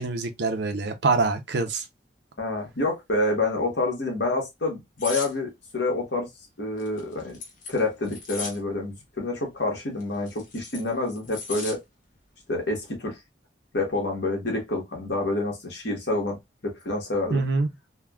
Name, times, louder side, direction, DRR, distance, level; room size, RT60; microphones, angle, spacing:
voice 1, 0.0-1.8 17.3-17.7, right 3 dB, 65° right, 0.6 m, -25 dB
voice 2, 2.4-6.3 6.6-7.3 7.7-11.8 12.5-13.2 13.7-16.4 16.6-17.4, left 2 dB, 70° left, 1.3 m, -28 dB
sound 1, 5.0-5.3 6.8-8.6 10.0-11.8 12.2-12.4, left 4 dB, 45° left, 0.8 m, -37 dB
3.4 x 2.2 x 2.2 m
head